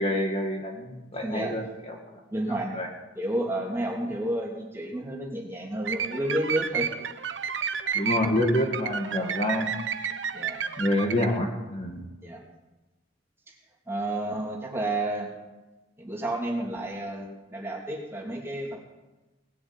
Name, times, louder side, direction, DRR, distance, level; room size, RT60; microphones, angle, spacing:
voice 1, 0.0-2.0 2.6-2.9 7.9-9.8 10.8-12.0, left 1 dB, 35° left, 1 dB, 2.0 m, -27 dB
voice 2, 1.2-1.6 2.3-2.7 3.2-6.9 10.3-10.6 12.2-12.4 13.9-15.3 16.0-18.8, right 1 dB, 15° right, -2 dB, 2.9 m, -31 dB
sound 1, 5.9-11.4, right 7 dB, 80° right, 0.9 m, -31 dB
19.0 x 7.2 x 8.9 m, 1.1 s
head